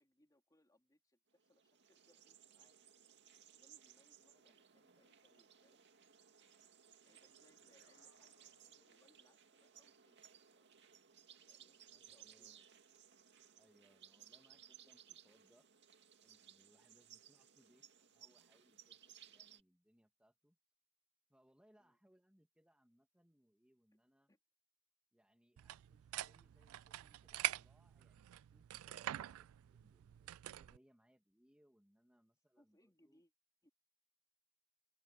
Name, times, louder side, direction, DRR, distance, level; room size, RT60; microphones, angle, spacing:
voice 1, 0.0-2.8 3.5-5.9 7.0-8.4 8.8-10.8 11.4-12.5 21.8-22.0 23.9-24.0 24.3-24.4 32.6-33.3 33.6-33.7, left 1 dB, 15° left, 3.2 m, -75 dB
sound 1, 1.4-19.6, right 9 dB, 55° right, 2.3 m, -63 dB
sound 2, 7.1-9.4, left 4 dB, 60° left, 1.6 m, -75 dB
voice 2, 11.9-12.7 13.5-15.7 16.2-20.6 21.3-24.3 25.1-33.2, equal, 5° right, 1.7 m, -73 dB
sound 3, 25.6-30.8, right 14 dB, 70° right, 0.3 m, -45 dB
open air
head